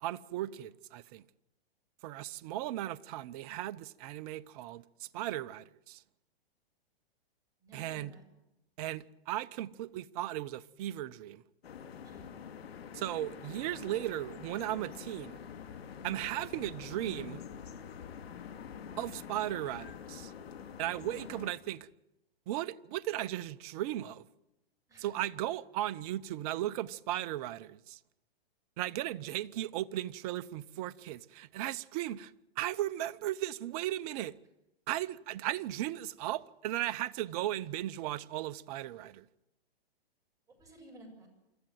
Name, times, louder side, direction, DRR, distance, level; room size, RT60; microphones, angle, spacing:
voice 1, 0.0-1.2 2.0-6.0 7.7-8.1 8.8-11.4 12.9-15.4 16.0-17.4 19.0-20.3 20.8-21.9 22.5-24.3 25.0-28.0 28.8-34.3 34.9-39.3, right 14 dB, 40° right, 0.7 m, -36 dB
voice 2, 7.6-8.2 12.0-12.3 21.1-21.3 24.9-25.1 40.5-41.3, right 2 dB, 10° right, 7.4 m, -54 dB
sound 1, 11.6-21.5, left 7 dB, 75° left, 2.4 m, -46 dB
25.5 x 13.5 x 9.2 m
hypercardioid pair, 135°, 31 cm